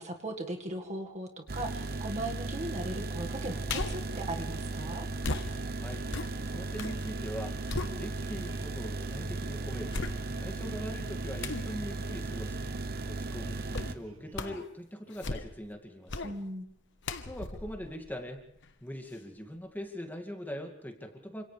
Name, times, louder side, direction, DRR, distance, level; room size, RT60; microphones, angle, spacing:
voice 1, 0.0-5.1 16.2-16.7, right 1 dB, 35° right, 2 dB, 2.0 m, -38 dB
sound 1, 1.5-13.9, right 3 dB, 50° right, 0.9 m, -36 dB
sound 2, 3.7-4.1 5.2-7.0 7.4-8.5 9.0-9.1 9.9-10.6 11.4-11.7 13.7-14.0 14.3-14.7 15.1-15.7 16.1-16.4 17.0-18.7 19.1-19.2, left 3 dB, 60° left, 1.3 m, -37 dB
voice 2, 5.7-6.1 6.4-10.0 10.4-12.6 13.0-16.4 17.2-18.4 18.8-21.4, equal, 10° left, 3 dB, 2.4 m, -42 dB
sound 3, 6.0-14.6, right 1 dB, 85° right, 2.1 m, -52 dB
29.0 x 26.5 x 3.5 m, 0.68 s
head